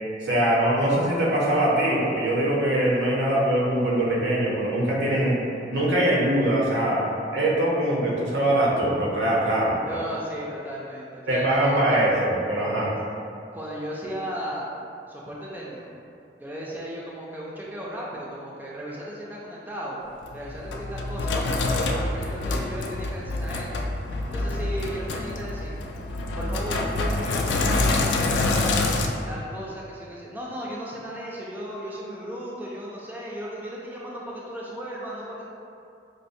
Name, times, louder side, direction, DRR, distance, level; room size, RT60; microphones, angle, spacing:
voice 1, 0.2-5.4 5.7-9.8 11.3-12.9, right 1 dB, 80° right, -5 dB, 0.7 m, -22 dB
voice 2, 9.9-12.0 13.5-14.7 15.1-15.9 16.4-20.0 20.3-23.9 24.3-25.7 26.4-27.5 27.9-28.7 29.1-35.4, equal, 10° right, -6 dB, 0.4 m, -35 dB
Sink (filling or washing), 20.2-29.1, left 2 dB, 85° left, 0.3 m, -26 dB
4.9 x 2.0 x 2.6 m, 2.5 s
head